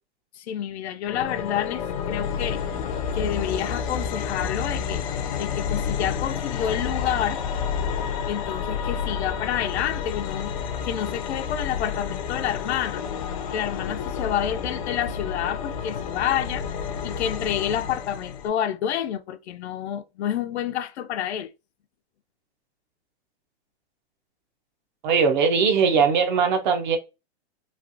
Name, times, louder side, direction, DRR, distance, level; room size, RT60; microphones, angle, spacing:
voice 1, 0.3-2.6 3.1-5.0 5.4-7.4 8.3-10.5 10.8-13.0 13.5-16.7 17.0-21.5, left 10 dB, 85° left, 0.5 m, -29 dB
sound 1, 1.1-18.5, left 7 dB, 35° left, 0.4 m, -30 dB
voice 2, 25.0-27.0, right 5 dB, 45° right, 0.7 m, -20 dB
3.2 x 2.4 x 2.5 m
hypercardioid pair, 160°, 33 cm